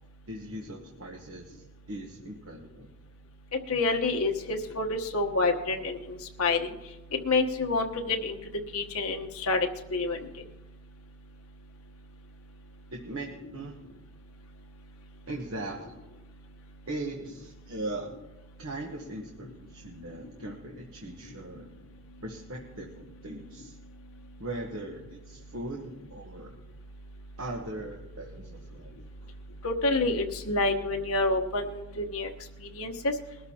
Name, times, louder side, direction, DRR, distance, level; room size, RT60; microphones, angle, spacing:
voice 1, 0.3-2.9 12.9-13.7 15.3-15.9 16.9-18.1 18.6-21.7 22.2-23.8 24.4-26.5 27.4-28.9 29.2-29.3, right 2 dB, 70° right, 0 dB, 1.2 m, -39 dB
voice 2, 3.7-6.0 6.4-6.7 7.2-8.4 8.7-10.2 29.6-32.3 32.8-33.1, left 3 dB, 80° left, 3 dB, 1.2 m, -27 dB
21.5 x 13.0 x 2.9 m, 1.1 s
head